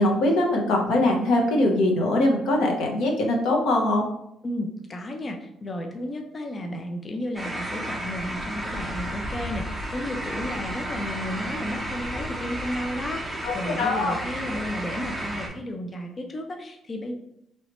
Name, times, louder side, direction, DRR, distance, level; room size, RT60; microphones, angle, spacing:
voice 1, 0.0-4.1 13.4-14.2, left 1 dB, 80° left, 1 dB, 0.7 m, -22 dB
voice 2, 4.4-17.1, left 1 dB, 25° left, 3 dB, 0.3 m, -33 dB
sound 1, 7.4-15.5, right 1 dB, 5° right, 0.7 m, -32 dB
3.1 x 2.9 x 2.9 m, 0.78 s
cardioid pair, 155°, 0 cm